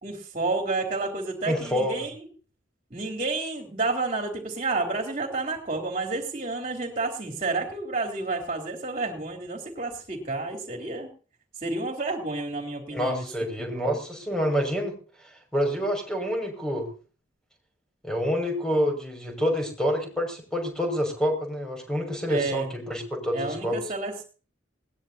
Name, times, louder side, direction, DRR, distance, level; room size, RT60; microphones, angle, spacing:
voice 1, 0.0-2.1 2.9-11.1 11.6-13.2 13.7-14.0 22.3-22.7 23.3-24.2, right 3 dB, 35° right, 2 dB, 3.6 m, -30 dB
voice 2, 1.4-2.1 12.9-14.9 15.5-16.9 18.0-23.7, equal, 5° left, 3 dB, 6.1 m, -27 dB
21.0 x 18.5 x 2.9 m, 0.39 s
head